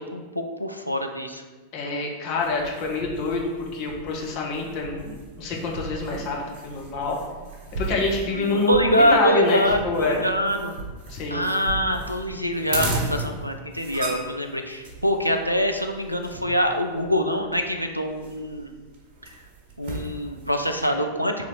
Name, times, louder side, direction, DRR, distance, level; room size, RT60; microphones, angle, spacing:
voice 1, 0.0-1.4 1.8-2.1 8.3-10.8 11.3-18.7 19.8-21.5, equal, 90° left, 4 dB, 0.4 m, -25 dB
voice 2, 1.7-6.4 6.6-7.2 7.7-10.2 11.1-11.5, left 3 dB, 40° left, -1 dB, 0.9 m, -26 dB
sound 1, 2.4-20.9, right 2 dB, 45° right, 1.0 m, -36 dB
3.8 x 2.9 x 4.4 m, 1.4 s
figure-of-eight pair, 90°, 0 cm